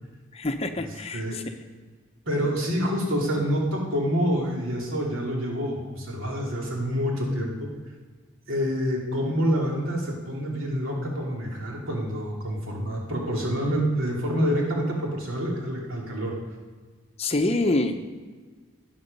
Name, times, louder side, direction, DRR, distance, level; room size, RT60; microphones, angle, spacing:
voice 1, 0.3-1.4 17.2-18.0, left 2 dB, 30° left, 7 dB, 0.7 m, -26 dB
voice 2, 2.3-7.7 8.5-16.3, equal, 80° right, -2 dB, 2.8 m, -27 dB
13.0 x 9.6 x 5.3 m, 1.4 s
head